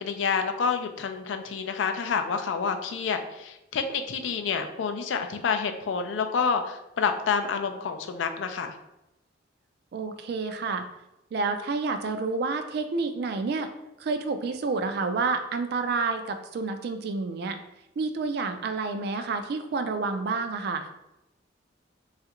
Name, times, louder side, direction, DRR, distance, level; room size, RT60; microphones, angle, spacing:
voice 1, 0.0-8.7, left 5 dB, 80° left, 7 dB, 0.4 m, -28 dB
voice 2, 9.9-10.8 11.3-13.7 14.0-17.6 18.0-20.9, right 4 dB, 55° right, 8 dB, 0.3 m, -29 dB
3.2 x 2.4 x 2.9 m, 0.91 s
head